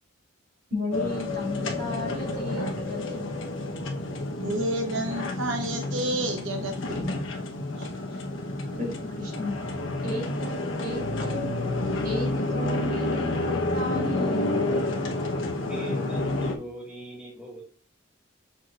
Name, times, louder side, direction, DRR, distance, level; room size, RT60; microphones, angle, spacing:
voice 1, 0.7-3.3 8.8-9.5 10.0-11.4 12.0-14.5, left 2 dB, 50° right, -1 dB, 3.5 m, -34 dB
sound 1, 0.9-16.5, left 2 dB, 80° left, 1.1 m, -29 dB
voice 2, 4.4-7.0 7.7-7.9, right 1 dB, 85° right, 3 dB, 0.9 m, -30 dB
voice 3, 15.7-17.6, equal, 5° right, -4 dB, 2.4 m, -39 dB
6.7 x 5.9 x 2.5 m, 0.41 s
head